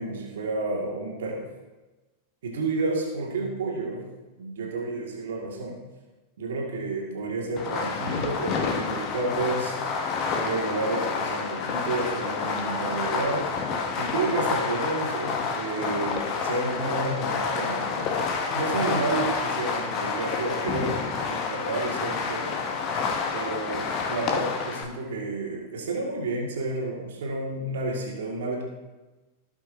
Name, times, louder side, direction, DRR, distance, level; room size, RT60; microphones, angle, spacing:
voice 1, 0.0-1.4 2.4-4.0 4.4-5.8 6.4-9.8 10.4-13.5 14.0-21.0 21.3-22.6 23.3-28.6, right 3 dB, 60° right, -2 dB, 1.9 m, -30 dB
Fireworks, 7.6-24.8, left 5 dB, 35° left, 1.0 m, -29 dB
16.5 x 5.9 x 2.6 m, 1.2 s
figure-of-eight pair, 90°, 0 cm